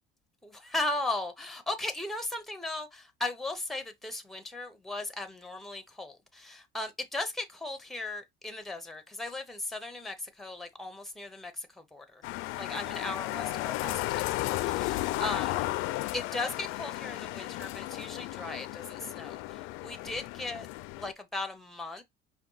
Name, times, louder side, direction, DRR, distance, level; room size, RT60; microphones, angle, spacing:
voice 1, 0.4-11.7 11.9-12.2 12.6-14.2 14.6-15.7 16.1-20.7 21.0-22.0, left 2 dB, ahead, 0.7 m, -37 dB
sound 1, 12.2-21.1, left 18 dB, 75° left, 0.4 m, -34 dB
5.1 x 2.7 x 3.9 m
cardioid pair, 140°, 21 cm